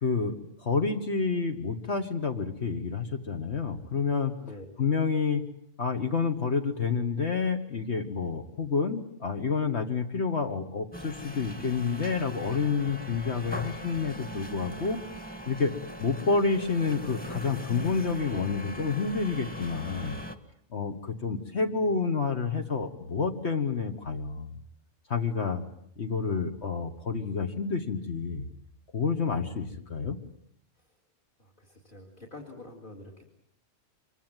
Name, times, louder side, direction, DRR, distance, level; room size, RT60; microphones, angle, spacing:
voice 1, 0.0-4.3 4.8-5.4 5.8-15.0 15.5-15.7 16.0-20.2 20.7-24.6 25.1-25.6 26.0-28.5 28.9-30.2, left 5 dB, 60° left, 5 dB, 1.7 m, -29 dB
voice 2, 4.4-4.7 29.0-29.8 30.7-30.9 31.4-33.2, left 2 dB, 45° left, 3 dB, 3.4 m, -48 dB
sound 1, 10.9-20.3, equal, 5° left, 1.7 m, -40 dB
25.5 x 23.5 x 9.1 m, 0.69 s
omnidirectional pair, 1.2 m